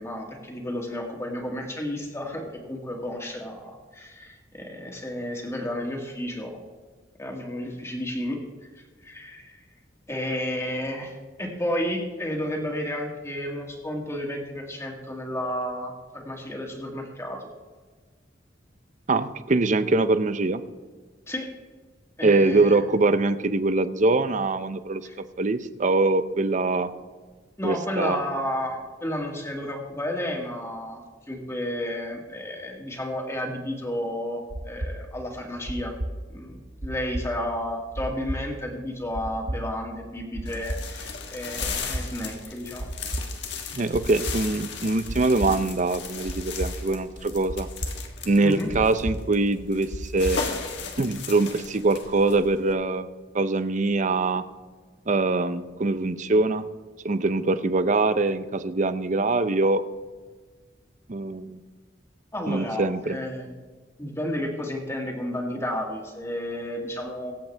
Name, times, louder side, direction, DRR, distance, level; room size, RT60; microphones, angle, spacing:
voice 1, 0.0-6.6 7.2-8.4 9.0-9.6 10.1-17.5 21.3-21.5 22.2-22.8 25.0-25.1 27.6-31.0 31.3-35.9 36.3-42.9 43.7-43.8 48.4-48.7 62.3-63.5 64.0-67.3, left 1 dB, 15° left, 0 dB, 2.2 m, -32 dB
voice 2, 19.1-20.6 22.2-26.9 27.6-28.2 43.7-47.7 48.3-50.4 51.0-54.4 55.1-56.6 57.0-59.8 61.1-61.6 62.5-63.2, right 3 dB, 40° right, 12 dB, 0.6 m, -23 dB
sound 1, 34.5-50.6, right 1 dB, 85° right, 1.6 m, -33 dB
sound 2, 40.5-52.7, left 5 dB, 65° left, 1.5 m, -37 dB
23.5 x 8.3 x 3.4 m, 1.4 s
head